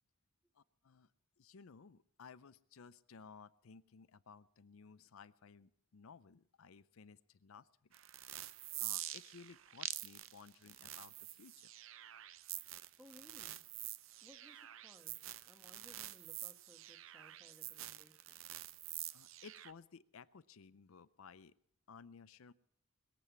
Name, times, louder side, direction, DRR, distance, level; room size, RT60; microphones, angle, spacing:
voice 1, 0.5-1.1 1.4-7.7 8.8-11.7 19.1-21.5 21.9-22.5, left 5 dB, 75° left, 14 dB, 0.5 m, -58 dB
sound 1, 7.9-19.7, right 14 dB, 70° right, 0.5 m, -47 dB
voice 2, 13.0-13.6 14.2-18.4, equal, 5° right, 5 dB, 1.2 m, -63 dB
21.0 x 7.7 x 8.3 m, 0.66 s
head